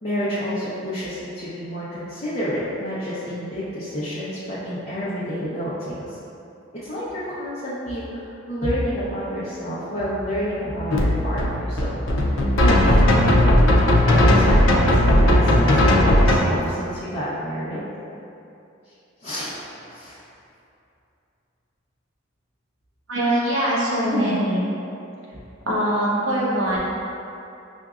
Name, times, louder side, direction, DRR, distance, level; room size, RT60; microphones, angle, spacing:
voice 1, 0.0-6.2 6.8-17.8 19.2-20.2 24.1-24.3, equal, 35° left, -12 dB, 0.7 m, -29 dB
sound 1, 10.9-16.4, left 1 dB, 85° left, 0.5 m, -16 dB
voice 2, 23.1-24.6 25.7-26.8, right 1 dB, 75° right, -6 dB, 0.8 m, -22 dB
5.8 x 2.6 x 2.4 m, 2.7 s
head